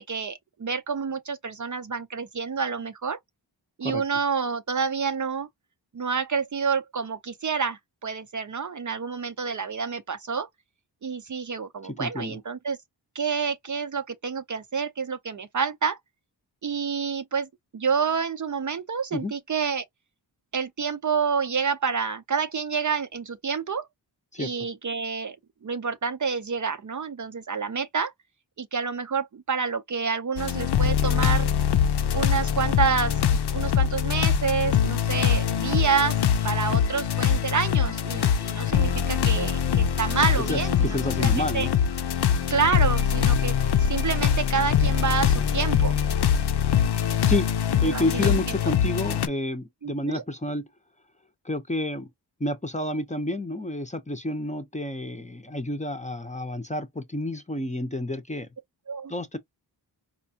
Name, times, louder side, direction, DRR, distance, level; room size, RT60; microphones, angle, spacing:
voice 1, 0.0-3.2 3.8-5.5 5.9-10.5 11.0-12.8 13.1-16.0 16.6-19.8 20.5-23.9 24.4-25.4 25.6-28.1 28.6-31.5 32.1-41.7 42.5-46.0 47.8-48.6 49.8-50.2 58.9-59.1, right 5 dB, 40° right, 0.6 m, -28 dB
voice 2, 11.8-12.4 19.1-19.3 24.3-24.5 40.5-41.7 47.3-47.5 47.8-50.7 51.4-52.1 52.4-58.5 59.1-59.4, left 1 dB, 15° left, 0.7 m, -29 dB
sound 1, 30.4-49.3, left 8 dB, 60° left, 0.6 m, -23 dB
4.3 x 2.3 x 2.7 m
cardioid pair, 55°, 44 cm